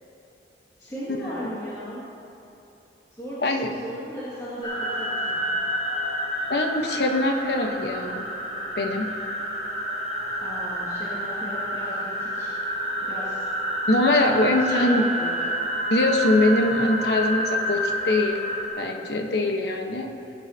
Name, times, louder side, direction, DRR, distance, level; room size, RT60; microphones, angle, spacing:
voice 1, 0.8-2.0 3.1-5.4 10.4-12.5 13.0-13.5 14.2-15.5, equal, 20° left, -10 dB, 2.1 m, -36 dB
sound 1, 4.6-18.7, equal, 35° left, 2.6 m, -29 dB
voice 2, 6.5-8.2 8.8-9.1 13.9-15.0 15.9-18.4 18.8-20.1, left 2 dB, 65° left, 3 dB, 1.1 m, -22 dB
18.5 x 10.0 x 2.8 m, 2.9 s
head